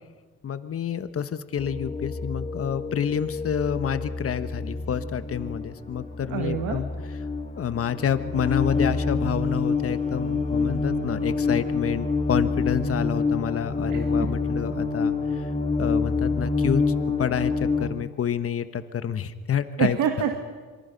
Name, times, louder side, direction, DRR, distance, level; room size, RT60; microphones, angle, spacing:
voice 1, 0.4-6.9 7.6-15.5 15.8-16.8 17.2-20.0, left 8 dB, 50° left, 11 dB, 1.3 m, -28 dB
sound 1, 1.6-17.9, left 4 dB, 25° left, 2.6 m, -27 dB
voice 2, 6.3-6.8 13.9-14.3 19.8-20.4, right 8 dB, 85° right, 5 dB, 1.8 m, -27 dB
26.5 x 24.0 x 5.4 m, 1.4 s
cardioid pair, 90°, 30 cm